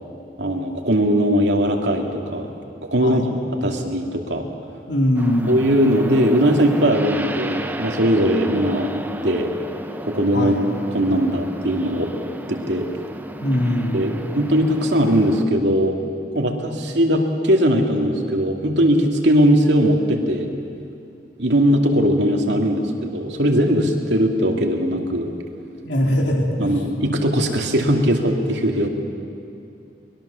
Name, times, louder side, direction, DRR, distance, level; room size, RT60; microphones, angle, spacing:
voice 1, 0.4-2.5 2.9-3.2 3.6-4.5 5.5-9.5 10.0-10.6 10.9-12.1 12.5-12.9 13.9-16.0 16.3-20.5 21.4-25.3 26.6-28.9, equal, 85° right, 2 dB, 2.5 m, -19 dB
voice 2, 4.9-5.5 10.3-10.7 13.4-14.0 25.8-26.7, left 1 dB, 90° left, 1 dB, 3.2 m, -21 dB
sound 1, 5.1-15.4, right 1 dB, 10° right, 0.8 m, -34 dB
23.5 x 21.0 x 7.0 m, 2.6 s
head